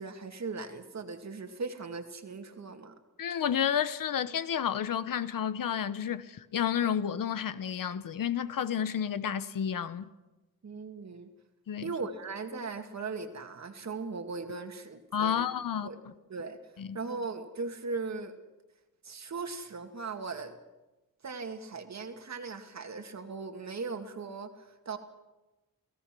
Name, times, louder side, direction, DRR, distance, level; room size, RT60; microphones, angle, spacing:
voice 1, 0.0-2.9 10.6-11.3 11.8-15.5 15.8-16.0 16.3-16.6 16.9-18.4 19.0-20.6 21.2-25.0, right 4 dB, 50° right, 2.2 m, -38 dB
voice 2, 3.2-10.1 11.7-11.9 15.1-15.9 16.8-17.0, left 8 dB, 70° left, 1.0 m, -31 dB
29.5 x 16.5 x 6.1 m
wide cardioid pair, 95°, 34 cm